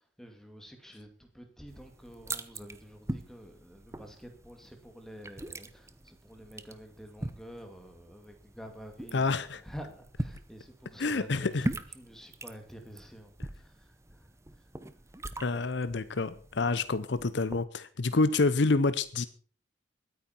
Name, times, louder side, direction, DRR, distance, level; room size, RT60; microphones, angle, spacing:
voice 1, 0.0-14.7 16.6-16.7, equal, ahead, 2.3 m, -49 dB
sound 1, 1.7-17.6, right 1 dB, 15° right, 0.8 m, -42 dB
voice 2, 9.1-9.6 11.0-11.7 15.4-19.2, left 3 dB, 65° left, 0.7 m, -28 dB
21.5 x 9.4 x 4.4 m
head